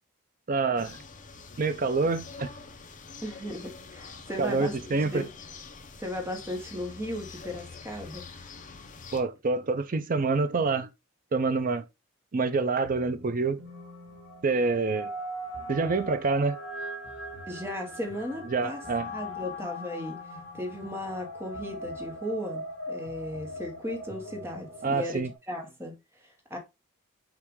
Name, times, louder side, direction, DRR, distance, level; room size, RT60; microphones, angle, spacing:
voice 1, 0.5-1.0 1.6-2.5 4.4-5.3 9.1-10.9 11.3-11.8 12.3-13.6 14.4-15.1 15.7-16.6 18.5-19.1 24.8-25.3, right 4 dB, 40° right, 0.5 m, -26 dB
sound 1, 0.8-9.2, left 4 dB, 35° left, 0.7 m, -46 dB
voice 2, 3.2-5.3 6.0-8.3 17.5-20.2 20.5-26.6, left 1 dB, 10° right, 1.1 m, -36 dB
sound 2, 12.8-15.1 15.5-16.4 17.0-21.2 21.5-22.4 23.0-24.8, left 2 dB, 65° right, 1.3 m, -51 dB
sound 3, 13.7-25.4, equal, 65° left, 1.5 m, -40 dB
5.8 x 2.5 x 3.6 m
head